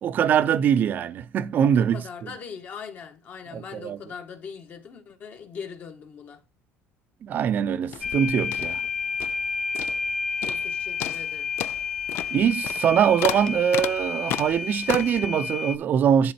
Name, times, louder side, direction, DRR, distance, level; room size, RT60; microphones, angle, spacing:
voice 1, 0.0-2.3 3.5-4.0 7.2-8.8 12.3-16.3, right 8 dB, 40° right, 0.7 m, -23 dB
voice 2, 1.7-6.4 10.4-11.5, left 6 dB, 40° left, 1.5 m, -40 dB
sound 1, 7.8-9.5 9.7-10.1 10.4-10.7 11.0-15.3, left 14 dB, 60° left, 0.4 m, -33 dB
sound 2, 8.0-15.8, left 5 dB, 15° left, 1.2 m, -30 dB
10.5 x 3.8 x 4.4 m
cardioid pair, 135°, 5 cm